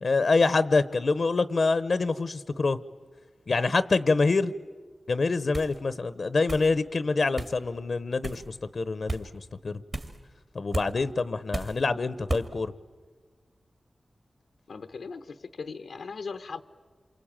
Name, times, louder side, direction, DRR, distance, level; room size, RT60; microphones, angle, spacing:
voice 1, 0.0-2.8 3.5-4.5 5.1-9.3 9.6-9.8 10.5-12.7, left 3 dB, 60° left, 15 dB, 0.7 m, -26 dB
sound 1, 5.5-5.8 6.5-6.7 7.4-7.6 8.2-8.5 9.1-9.2 9.9-10.2 10.7-10.9 11.5-11.8 12.3-12.5, right 2 dB, 45° right, 2.2 m, -33 dB
voice 2, 14.7-16.6, left 4 dB, 90° left, 9 dB, 0.8 m, -38 dB
28.0 x 23.5 x 8.9 m, 1.5 s
wide cardioid pair, 85°, 0 cm